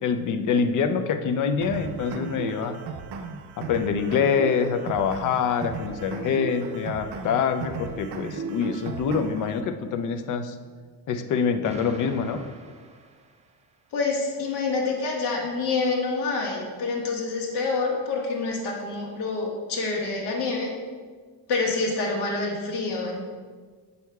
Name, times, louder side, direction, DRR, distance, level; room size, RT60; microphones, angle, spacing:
voice 1, 0.0-2.8 3.6-10.6 11.1-12.4, left 6 dB, 50° left, 8 dB, 0.5 m, -25 dB
sound 1, 1.6-9.6, right 5 dB, 75° right, 0.7 m, -36 dB
Explosion, 11.6-13.8, right 3 dB, 20° right, 0.3 m, -44 dB
voice 2, 13.9-20.7 21.5-23.2, left 3 dB, 75° left, -2 dB, 1.5 m, -27 dB
6.9 x 6.3 x 2.3 m, 1.5 s
cardioid pair, 145°, 42 cm